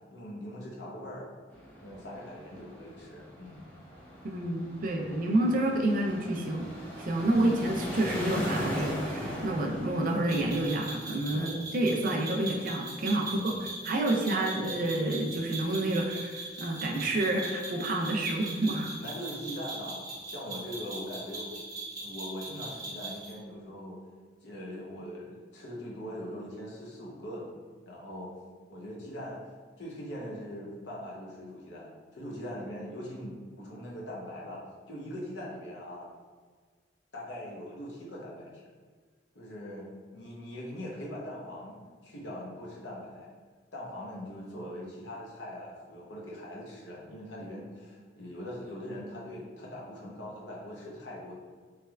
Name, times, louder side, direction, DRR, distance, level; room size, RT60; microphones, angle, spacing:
voice 1, 0.1-1.3 1.8-3.6 7.3-7.6 11.3-11.6 13.2-13.7 19.0-21.5 22.0-24.0 24.4-27.5 27.9-28.3 28.7-29.4 29.8-36.1 37.1-38.7 39.3-43.3 43.7-51.3, equal, 80° left, -3 dB, 0.8 m, -41 dB
sound 1, 1.5-10.9, equal, 10° left, 0.7 m, -39 dB
voice 2, 4.2-6.7 7.0-13.5 13.9-18.9, right 1 dB, 50° right, 1 dB, 0.4 m, -29 dB
sound 2, 10.3-23.3, right 2 dB, 20° right, 1.0 m, -40 dB
3.3 x 3.2 x 2.3 m, 1.5 s
head